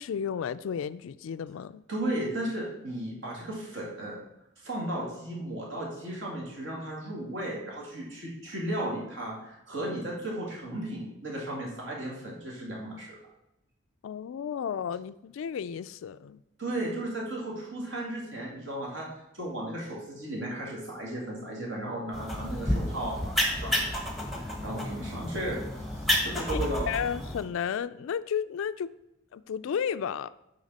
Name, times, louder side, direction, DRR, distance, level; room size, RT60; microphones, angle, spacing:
voice 1, 0.0-1.8 14.0-16.4 26.3-26.6 26.9-28.9 29.3-30.3, left 7 dB, 75° left, 15 dB, 0.3 m, -33 dB
voice 2, 1.9-4.2 4.6-13.2 16.6-19.1 19.3-23.9 24.4-25.6 26.0-26.9, right 1 dB, 65° right, -2 dB, 2.3 m, -35 dB
sound 1, 22.1-27.4, left 1 dB, ahead, 1.0 m, -30 dB
10.0 x 4.0 x 4.1 m, 0.87 s
head